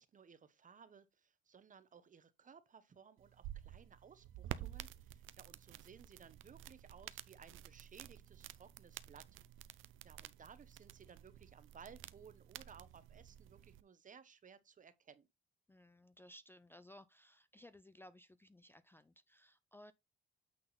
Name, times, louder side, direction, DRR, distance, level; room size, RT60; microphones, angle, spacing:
voice 1, 0.0-9.3 10.0-15.3, right 6 dB, 40° right, 1.0 m, -60 dB
sound 1, 3.2-13.8, right 13 dB, 80° right, 0.6 m, -51 dB
voice 2, 15.7-19.9, left 1 dB, 10° left, 0.4 m, -59 dB
8.7 x 3.9 x 4.0 m
cardioid pair, 90°, 20 cm